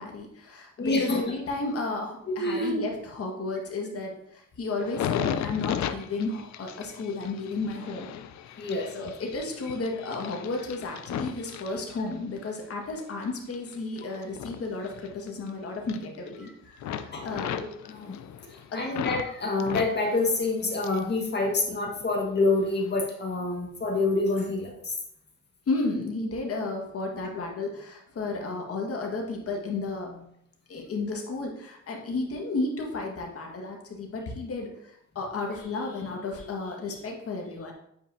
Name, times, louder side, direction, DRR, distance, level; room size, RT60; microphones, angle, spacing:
voice 1, 0.0-8.1 8.6-16.5 16.8-17.6 18.7-18.8 25.7-30.3 30.7-37.7, left 3 dB, 50° left, 1 dB, 1.7 m, -33 dB
voice 2, 0.8-1.2 2.3-2.8 8.6-9.1 17.1-18.1 18.7-24.9, left 2 dB, 35° left, 1 dB, 1.7 m, -27 dB
sound 1, 4.8-12.4 12.9-15.5 15.7-16.5 16.8-19.3 19.6-21.2 21.4-22.2 22.7-22.9, left 9 dB, 65° left, 0.5 m, -36 dB
8.5 x 5.2 x 2.7 m, 0.74 s
cardioid pair, 90°, 30 cm